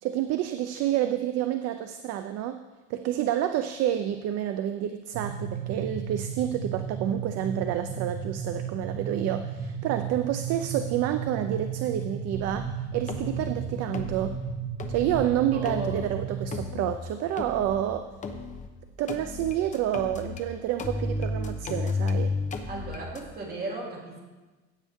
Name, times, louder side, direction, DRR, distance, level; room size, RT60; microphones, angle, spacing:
voice 1, 0.0-2.6 2.9-14.4 14.9-18.1 19.0-22.3, right 11 dB, 55° right, 8 dB, 0.6 m, -29 dB
sound 1, 5.1-16.6, right 6 dB, 90° right, 1.1 m, -34 dB
sound 2, 12.3-12.7 13.1-13.6 13.9-14.4 14.8-15.3 15.6-16.1 16.5-17.0 17.4-17.8 18.2-18.7 19.1-20.4 20.8-23.2, left 3 dB, 25° left, 0.9 m, -33 dB
voice 2, 15.5-16.0 22.7-24.2, right 2 dB, 30° right, -2 dB, 2.7 m, -36 dB
15.5 x 8.6 x 3.6 m, 1.2 s
cardioid pair, 165°, 31 cm